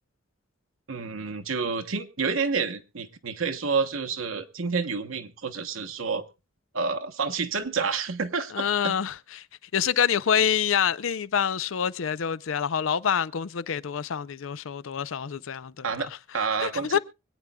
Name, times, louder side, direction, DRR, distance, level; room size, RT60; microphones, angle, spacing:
voice 1, 0.9-6.2 6.7-8.9 15.8-17.0, right 5 dB, 75° right, 1.1 m, -29 dB
voice 2, 8.5-9.5 9.7-15.9 16.6-17.0, left 8 dB, 75° left, 0.5 m, -26 dB
24.5 x 9.1 x 2.3 m
head